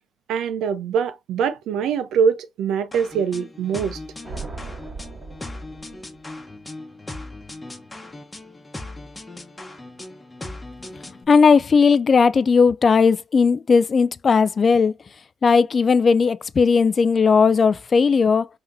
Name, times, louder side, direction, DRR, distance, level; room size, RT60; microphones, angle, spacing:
voice 1, 0.3-4.0, right 6 dB, 80° right, 0.7 m, -23 dB
sound 1, 2.9-11.2, left 2 dB, 15° left, 1.0 m, -38 dB
sound 2, 4.2-6.2, right 3 dB, 45° right, 3.4 m, -37 dB
voice 2, 11.3-14.9 15.4-18.5, left 5 dB, 40° left, 0.3 m, -17 dB
5.7 x 2.9 x 2.6 m
cardioid pair, 90°, 0 cm